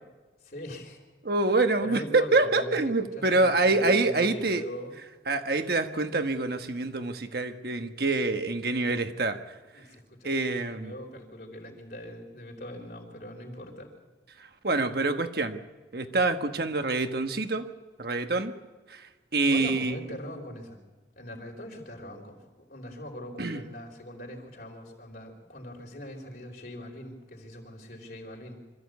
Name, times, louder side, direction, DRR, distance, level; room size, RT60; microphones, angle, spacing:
voice 1, 0.4-1.0 1.8-5.0 9.7-13.9 19.4-20.8 21.2-28.6, equal, 55° left, 1 dB, 4.2 m, -41 dB
voice 2, 1.2-4.6 5.3-9.4 10.2-10.9 14.6-15.6 15.9-17.7 18.0-18.5 18.9-20.0 23.4-23.6, right 3 dB, 55° right, 7 dB, 1.3 m, -26 dB
25.5 x 14.0 x 8.2 m, 1.3 s
head